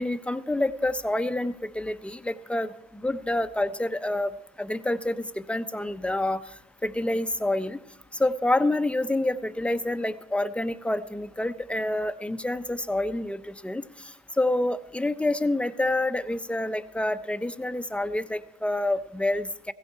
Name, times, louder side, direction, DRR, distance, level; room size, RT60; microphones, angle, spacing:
voice 1, 0.0-4.3 4.6-6.4 6.8-7.8 8.2-13.9 14.4-19.7, left 1 dB, 5° left, 12 dB, 0.9 m, -27 dB
16.0 x 16.0 x 4.4 m, 0.79 s
supercardioid pair, 75°, 16 cm